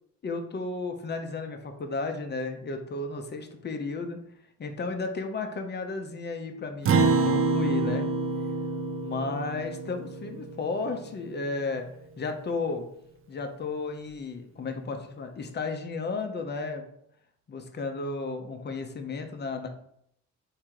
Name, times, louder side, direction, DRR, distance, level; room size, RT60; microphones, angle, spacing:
voice 1, 0.2-4.2 4.6-8.1 9.0-11.9 12.2-12.8 13.3-16.8 17.5-19.7, left 3 dB, 35° left, 5 dB, 0.7 m, -33 dB
Acoustic guitar, 6.9-11.5, right 3 dB, 45° right, 0.6 m, -27 dB
3.6 x 2.8 x 4.6 m, 0.71 s
cardioid pair, 90°, 30 cm